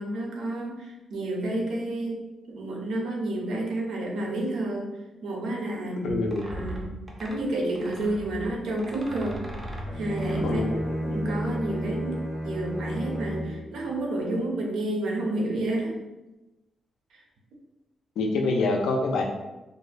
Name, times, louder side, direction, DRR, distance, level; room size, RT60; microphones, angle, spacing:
voice 1, 0.0-2.2 2.5-4.9 5.2-6.2 6.5-9.4 9.9-10.6 11.0-16.0, right 1 dB, 75° right, 0 dB, 0.5 m, -30 dB
voice 2, 6.0-6.5 10.4-10.9 18.2-19.2, left 3 dB, 85° left, 2 dB, 0.4 m, -26 dB
sound 1, 6.1-11.9, right 1 dB, 15° right, 0.3 m, -39 dB
Bowed string instrument, 9.8-13.6, equal, 25° left, 0.6 m, -31 dB
2.5 x 2.0 x 2.4 m, 1.0 s
wide cardioid pair, 175°, 0 cm